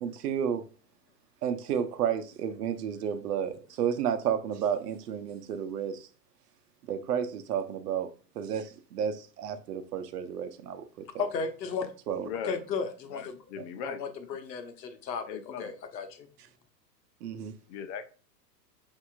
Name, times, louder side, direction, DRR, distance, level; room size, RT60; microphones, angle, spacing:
voice 1, 0.0-0.6 1.4-6.1 6.9-8.1 8.3-10.8 12.1-12.3 17.2-17.5, right 8 dB, 65° right, 0.9 m, -31 dB
voice 2, 11.2-11.9 12.4-13.3 13.8-16.3, left 5 dB, 75° left, 1.0 m, -35 dB
voice 3, 12.1-12.6 13.1-14.0 14.3-14.4 15.3-15.7 17.7-18.1, left 7 dB, 40° left, 0.8 m, -39 dB
6.9 x 2.9 x 2.4 m
hypercardioid pair, 105°, 50 cm